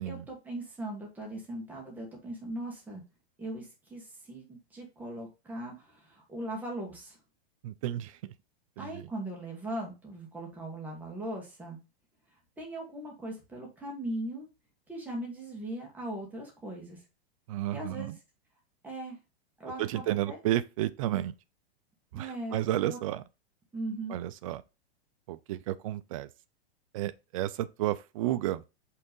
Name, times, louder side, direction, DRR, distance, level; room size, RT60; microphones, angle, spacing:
voice 1, 0.1-3.0 3.4-7.2 8.8-11.8 12.6-14.5 14.9-17.0 17.7-18.2 18.8-19.2 19.6-20.4 22.2-23.0 23.7-24.2, right 1 dB, 5° right, 1.9 m, -39 dB
voice 2, 7.6-8.3 8.8-9.0 17.5-18.2 19.8-21.3 22.1-23.2 24.1-24.6 25.3-26.3 26.9-28.6, right 14 dB, 35° right, 0.4 m, -32 dB
5.6 x 3.7 x 5.4 m
supercardioid pair, 155°, 32 cm